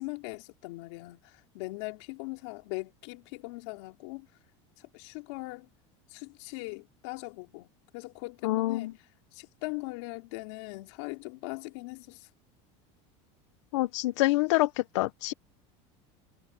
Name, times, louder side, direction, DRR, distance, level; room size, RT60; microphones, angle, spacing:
voice 1, 0.0-4.3 4.8-5.7 6.1-12.3, left 25 dB, 70° left, 4.7 m, -40 dB
voice 2, 8.4-8.9 13.7-15.3, left 19 dB, 85° left, 0.8 m, -26 dB
cardioid pair, 160°, 15 cm